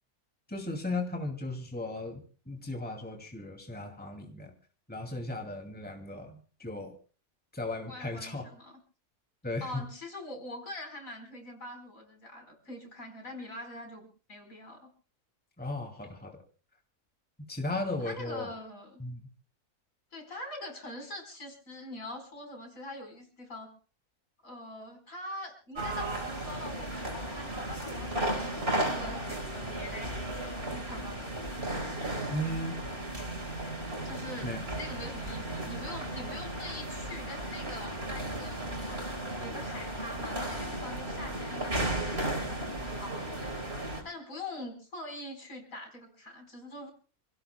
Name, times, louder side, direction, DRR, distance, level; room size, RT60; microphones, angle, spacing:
voice 1, 0.5-4.5 4.9-6.9 7.5-8.4 9.4-9.8 15.6-16.4 17.5-18.5 19.0-19.2 32.3-32.8 34.4-34.6, left 2 dB, 5° left, 3 dB, 2.4 m, -36 dB
voice 2, 7.9-8.8 9.6-14.9 18.0-19.0 20.1-23.7 24.4-31.5 34.0-39.0 39.4-46.9, left 1 dB, 60° left, 4 dB, 4.9 m, -44 dB
sound 1, 25.7-44.0, right 1 dB, 40° right, 4.5 m, -35 dB
28.0 x 17.0 x 2.2 m, 0.37 s
omnidirectional pair, 1.6 m